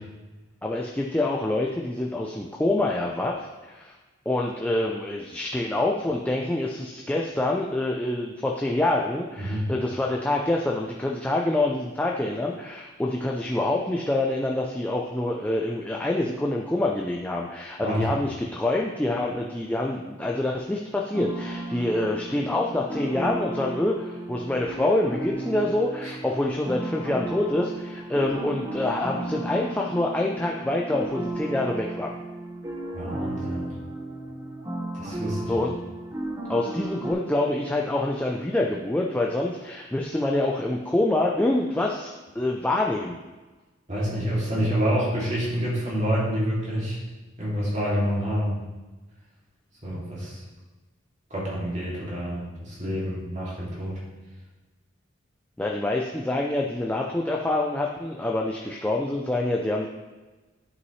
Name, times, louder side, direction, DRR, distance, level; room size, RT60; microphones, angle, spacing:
voice 1, 0.6-3.9 4.3-32.1 35.5-35.7 36.5-43.2 55.6-59.9, left 2 dB, 5° left, -1 dB, 0.4 m, -26 dB
voice 2, 17.8-18.1 26.0-26.1 32.9-33.7 34.9-35.7 43.9-47.0 47.4-48.5 49.8-50.4 51.3-54.0, equal, 35° right, -7 dB, 2.4 m, -27 dB
sound 1, 21.1-37.1, right 1 dB, 15° right, 0.8 m, -34 dB
11.0 x 5.6 x 3.2 m, 1.2 s
head